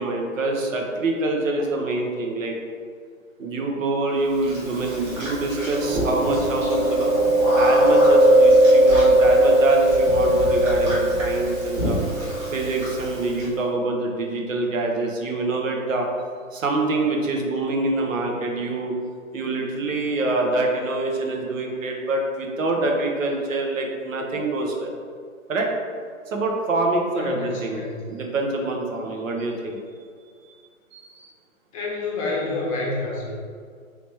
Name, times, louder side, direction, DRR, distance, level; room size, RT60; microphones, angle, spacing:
voice 1, 0.0-2.5 3.4-7.1 7.5-12.0 12.5-16.1 16.5-18.9 19.3-24.9 25.5-25.7 26.3-29.8 30.9-31.3, right 2 dB, 70° right, 1 dB, 0.8 m, -25 dB
Chewing mastication, 4.5-13.4, right 1 dB, 15° right, 0.7 m, -19 dB
voice 2, 27.1-28.0 31.7-33.4, left 2 dB, 25° left, -4 dB, 0.7 m, -28 dB
3.2 x 2.9 x 3.2 m, 2.1 s
figure-of-eight pair, 130°, 41 cm